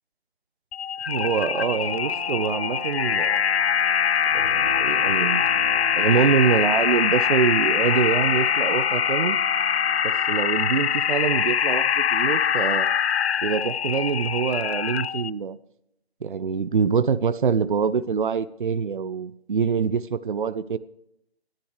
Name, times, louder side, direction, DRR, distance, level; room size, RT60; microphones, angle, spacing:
sound 1, 0.7-15.3, left 8 dB, 70° left, 0.5 m, -23 dB
voice 1, 1.1-3.4 4.3-5.5 6.0-9.4 10.0-12.9 13.4-15.6 16.2-20.8, right 6 dB, 50° right, 14 dB, 0.6 m, -25 dB
Brass instrument, 1.4-10.1, right 3 dB, 20° left, 0.8 m, -39 dB
sound 2, 4.3-7.6, right 2 dB, 25° right, 1.7 m, -40 dB
24.5 x 10.5 x 3.2 m, 0.78 s
figure-of-eight pair, 165°, 33 cm